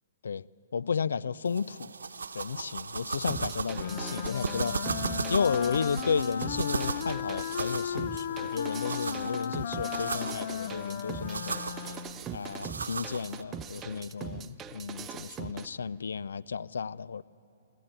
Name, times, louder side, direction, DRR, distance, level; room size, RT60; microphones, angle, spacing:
voice 1, 0.7-1.9 2.3-12.0 12.3-17.2, left 6 dB, 75° left, 0.4 m, -33 dB
sound 1, 1.5-13.4, right 4 dB, 85° right, 0.9 m, -37 dB
sound 2, 3.3-15.7, right 7 dB, 20° right, 0.7 m, -42 dB
Wind instrument woodwind instrument, 3.7-12.3, left 9 dB, 55° left, 0.8 m, -36 dB
29.5 x 13.5 x 8.9 m
hypercardioid pair, 135°, 0 cm